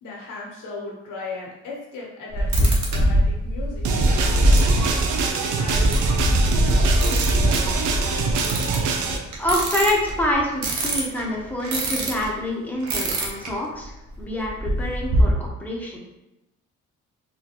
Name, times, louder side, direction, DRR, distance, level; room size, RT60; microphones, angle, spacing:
voice 1, 0.0-4.7 5.6-8.0, left 3 dB, 80° left, -4 dB, 1.2 m, -37 dB
sound 1, 2.3-12.3 12.8-13.5 13.8-13.9 14.1-15.3, right 1 dB, 70° right, 0.8 m, -22 dB
sound 2, 3.8-9.2, right 5 dB, 90° right, 0.5 m, -25 dB
voice 2, 9.4-16.0, left 1 dB, 5° left, -3 dB, 0.9 m, -26 dB
3.7 x 2.3 x 2.9 m, 0.94 s
cardioid pair, 90°, 30 cm